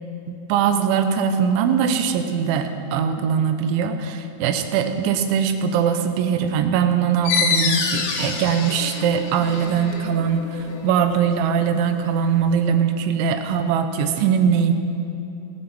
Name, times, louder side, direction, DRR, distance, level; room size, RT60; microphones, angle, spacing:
voice 1, 0.3-14.7, right 7 dB, 80° right, 7 dB, 3.2 m, -21 dB
sound 1, 7.3-12.5, left 5 dB, 85° left, 3.9 m, -27 dB
28.5 x 9.6 x 4.2 m, 2.7 s
omnidirectional pair, 5.4 m